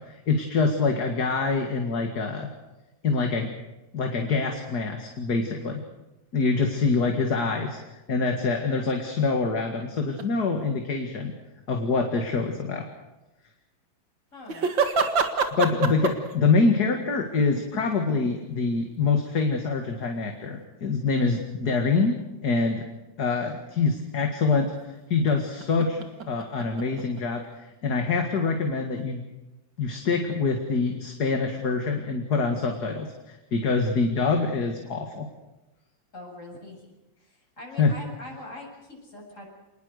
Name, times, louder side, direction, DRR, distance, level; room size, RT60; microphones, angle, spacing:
voice 1, 0.0-2.5 3.0-3.5 3.9-5.8 6.3-7.8 8.1-11.3 11.7-12.8 15.5-22.2 22.4-22.8 23.2-29.2 29.8-35.3 37.8-37.9, left 4 dB, 60° left, 3 dB, 2.5 m, -25 dB
sound 1, 10.2-10.3 14.5-16.3 17.4-18.5 19.2-19.3 20.2-20.3 25.1-27.5, right 5 dB, 80° right, 2.6 m, -27 dB
voice 2, 14.3-14.7 36.1-36.9 37.2-39.5, left 2 dB, 40° left, -1 dB, 8.0 m, -42 dB
27.0 x 20.5 x 6.7 m, 1.0 s
omnidirectional pair, 2.0 m